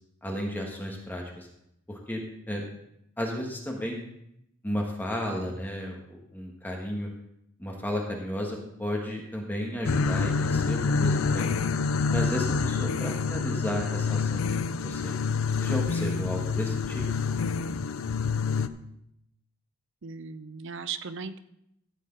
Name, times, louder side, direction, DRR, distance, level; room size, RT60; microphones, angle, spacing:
voice 1, 0.2-1.5 1.9-2.2 2.5-2.6 3.2-4.0 4.6-7.1 7.6-11.5 12.1-15.1 15.6-17.1, equal, 10° left, 0 dB, 1.4 m, -33 dB
sound 1, 9.8-18.7, left 5 dB, 80° left, 0.5 m, -27 dB
voice 2, 20.0-21.4, right 5 dB, 65° right, 11 dB, 0.6 m, -37 dB
13.5 x 8.3 x 3.8 m, 0.77 s
head